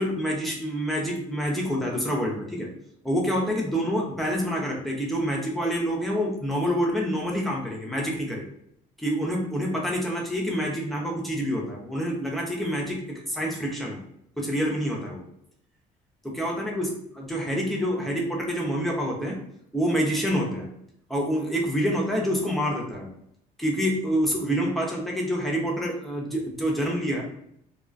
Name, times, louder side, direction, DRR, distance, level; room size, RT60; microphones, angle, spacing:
voice 1, 0.0-2.7 3.0-8.4 9.0-14.0 14.4-15.2 16.2-19.4 19.7-20.7 21.1-23.1 23.6-27.2, equal, ahead, -2 dB, 0.6 m, -27 dB
2.3 x 2.2 x 2.5 m, 0.72 s
cardioid pair, 110°, 17 cm